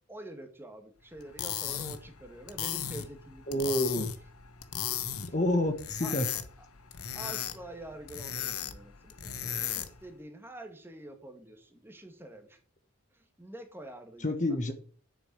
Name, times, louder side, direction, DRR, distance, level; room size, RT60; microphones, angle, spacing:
voice 1, 0.1-3.8 5.1-5.6 6.0-6.2 6.6-6.7 7.1-12.6 13.1-14.4, right 1 dB, 10° right, 5 dB, 1.7 m, -47 dB
sound 1, 1.2-10.1, left 9 dB, 85° left, 1.2 m, -37 dB
voice 2, 3.5-4.1 5.2-6.3 14.2-14.7, left 1 dB, 35° left, 8 dB, 1.3 m, -28 dB
8.9 x 7.0 x 8.2 m, 0.43 s
head